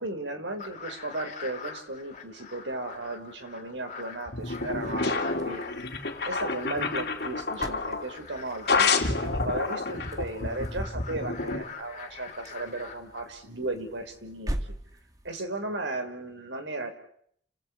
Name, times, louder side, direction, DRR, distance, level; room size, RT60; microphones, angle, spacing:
voice 1, 0.0-5.6 6.2-14.8 15.2-16.9, right 2 dB, 90° right, 6 dB, 4.6 m, -35 dB
sound 1, 0.6-13.2, left 5 dB, 45° left, 3.3 m, -45 dB
sound 2, 4.3-8.1 8.7-11.6, left 4 dB, 60° left, 3.1 m, -29 dB
sound 3, 4.3-15.5, right 1 dB, 20° right, 2.1 m, -43 dB
30.0 x 17.5 x 8.6 m, 0.68 s
head